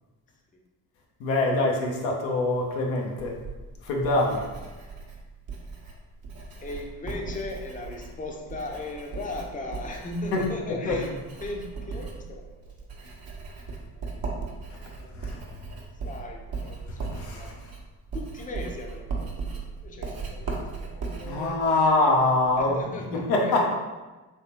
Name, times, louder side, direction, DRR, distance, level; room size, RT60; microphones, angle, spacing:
voice 1, 1.2-3.4 3.8-4.5 10.3-10.5 10.8-11.0 15.2-15.4 17.0-17.5 21.2-22.8 23.1-23.7, left 2 dB, 75° left, -1 dB, 0.8 m, -24 dB
Writing, 3.2-22.7, right 4 dB, 50° right, 1.0 m, -38 dB
voice 2, 6.6-11.1 11.4-12.4 14.7-15.6 16.0-17.5 18.1-21.6 22.6-23.7, left 2 dB, 20° left, 1 dB, 0.6 m, -38 dB
3.5 x 3.2 x 2.8 m, 1.2 s
hypercardioid pair, 40°, 46 cm